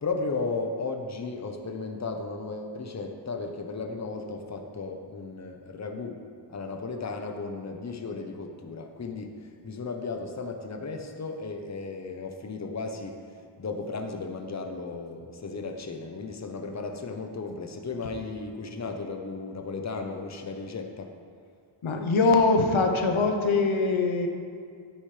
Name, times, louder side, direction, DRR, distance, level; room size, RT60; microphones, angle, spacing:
voice 1, 0.0-13.3 13.6-21.1, left 3 dB, 35° left, 4 dB, 1.0 m, -35 dB
voice 2, 21.8-24.3, left 3 dB, 90° left, 4 dB, 1.1 m, -22 dB
12.5 x 10.0 x 3.4 m, 2.2 s
wide cardioid pair, 110°, 47 cm